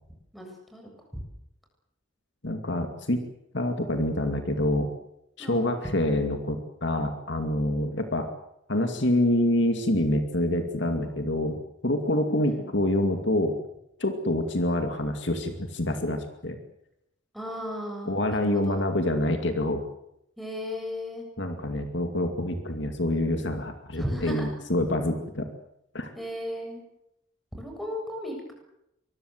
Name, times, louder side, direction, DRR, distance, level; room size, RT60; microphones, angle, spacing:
voice 1, 0.3-1.2 5.4-5.7 12.4-12.7 17.3-18.9 20.4-21.3 24.0-24.5 26.2-26.8 27.5-28.5, equal, ahead, 1 dB, 7.6 m, -35 dB
voice 2, 2.4-3.3 3.5-4.9 5.4-8.3 8.7-11.6 11.8-13.5 14.0-16.6 18.1-19.8 21.4-25.5 25.9-26.1, left 1 dB, 60° left, 6 dB, 2.4 m, -26 dB
25.0 x 21.5 x 7.9 m, 0.82 s
head